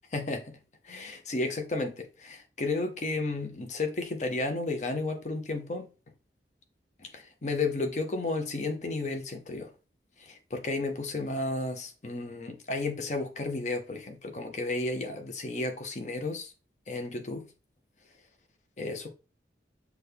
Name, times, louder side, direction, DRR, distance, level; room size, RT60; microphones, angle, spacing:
voice 1, 0.1-0.6 0.8-5.9 7.0-9.7 10.2-16.5 16.9-17.5 18.8-19.1, left 2 dB, 40° left, 0.7 m, -33 dB
6.1 x 2.3 x 3.4 m
head